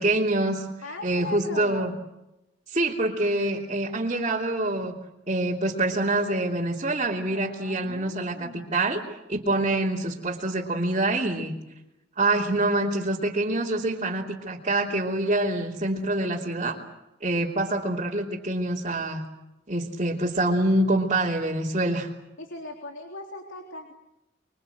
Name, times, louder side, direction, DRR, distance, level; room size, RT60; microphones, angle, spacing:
voice 1, 0.0-0.7 1.0-1.9 2.7-4.9 5.3-9.0 9.3-11.5 12.2-16.8 17.2-19.2 19.7-22.1, right 2 dB, 35° right, -4 dB, 3.1 m, -26 dB
voice 2, 0.8-2.0 7.3-8.8 22.4-23.9, left 2 dB, 75° left, 2 dB, 3.5 m, -39 dB
26.0 x 24.0 x 8.0 m, 0.91 s
head